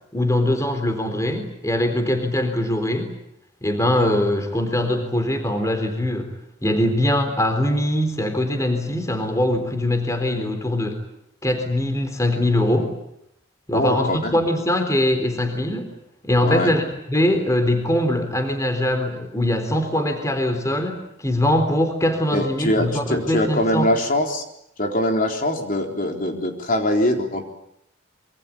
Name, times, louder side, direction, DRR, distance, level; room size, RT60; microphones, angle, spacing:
voice 1, 0.1-3.1 3.6-6.3 6.6-11.0 11.4-12.9 13.7-15.9 16.2-23.9, left 1 dB, 15° left, 7 dB, 3.8 m, -22 dB
voice 2, 13.7-14.4 16.4-16.7 22.3-24.4 24.8-27.5, left 1 dB, 40° left, 3 dB, 4.1 m, -22 dB
26.5 x 24.5 x 8.6 m, 0.78 s
head